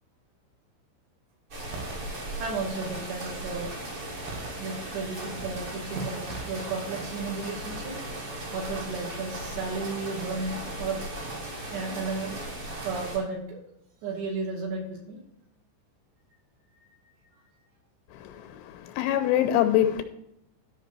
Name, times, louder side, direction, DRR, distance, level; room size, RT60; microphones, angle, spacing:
sound 1, 1.5-13.2, right 1 dB, 35° right, 2.5 m, -37 dB
sound 2, 1.7-2.0 2.7-3.4 4.3-5.0 5.4-5.6 5.9-6.5, right 4 dB, 80° right, 4.2 m, -40 dB
voice 1, 2.4-3.8 4.6-7.9 8.5-11.0 11.7-12.4 12.8-13.6 14.0-15.2 18.4-18.5, right 3 dB, 65° right, 4.2 m, -33 dB
voice 2, 18.1-20.0, left 11 dB, 85° left, 3.2 m, -25 dB
13.0 x 5.9 x 4.5 m
omnidirectional pair, 5.5 m